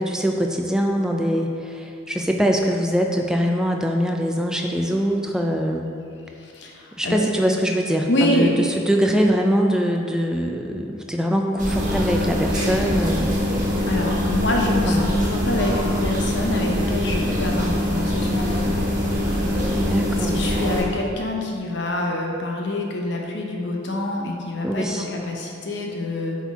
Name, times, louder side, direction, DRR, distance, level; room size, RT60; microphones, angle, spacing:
voice 1, 0.0-5.9 7.0-13.3 14.9-15.1 19.8-20.4 24.6-25.1, equal, 5° right, 1 dB, 0.4 m, -23 dB
voice 2, 6.4-7.2 8.1-8.6 13.9-18.8 20.2-26.4, left 1 dB, 60° left, 0 dB, 0.8 m, -26 dB
sound 1, 11.6-20.8, equal, 40° right, 1.3 m, -23 dB
8.0 x 4.4 x 3.5 m, 2.5 s
head